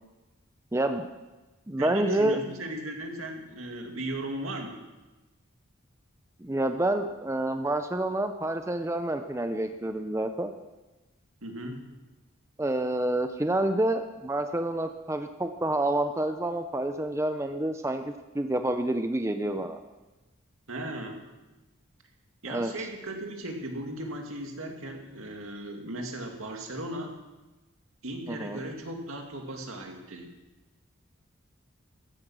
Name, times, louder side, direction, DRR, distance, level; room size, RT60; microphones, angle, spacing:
voice 1, 0.7-1.1 1.7-2.4 6.4-10.5 12.6-19.8 22.5-22.7 28.3-28.6, right 1 dB, 15° right, 7 dB, 0.5 m, -28 dB
voice 2, 1.8-4.8 11.4-11.8 20.7-21.2 22.4-27.1 28.0-30.3, right 1 dB, 80° right, 2 dB, 2.2 m, -37 dB
14.5 x 11.5 x 6.2 m, 1.1 s
head